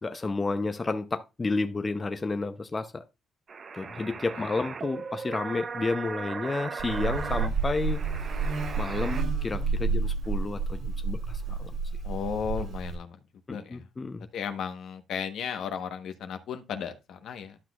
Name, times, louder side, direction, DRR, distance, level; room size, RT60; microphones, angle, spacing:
voice 1, 0.0-3.0 3.7-8.0 8.8-11.8 13.5-14.3, left 3 dB, 25° left, 0.7 m, -31 dB
sound 1, 3.5-9.2, right 5 dB, 45° right, 0.7 m, -38 dB
Buzz, 6.8-13.0, right 4 dB, 70° right, 2.9 m, -30 dB
voice 2, 12.0-13.2 13.5-13.9 14.3-17.6, left 7 dB, 75° left, 1.1 m, -35 dB
12.0 x 6.0 x 2.4 m
cardioid pair, 90°, 0 cm